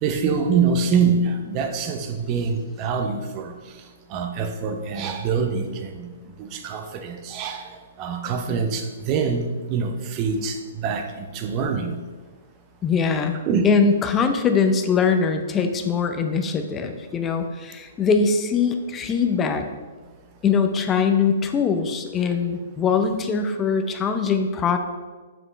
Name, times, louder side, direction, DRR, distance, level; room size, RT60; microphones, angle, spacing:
voice 1, 0.0-3.5 4.1-6.1 6.4-7.7 8.0-12.0 13.5-13.8, right 5 dB, 35° right, 6 dB, 0.8 m, -25 dB
voice 2, 12.8-19.7 20.4-24.8, left 5 dB, 20° left, 6 dB, 0.6 m, -22 dB
7.2 x 6.0 x 3.4 m, 1.4 s
hypercardioid pair, 125°, 0 cm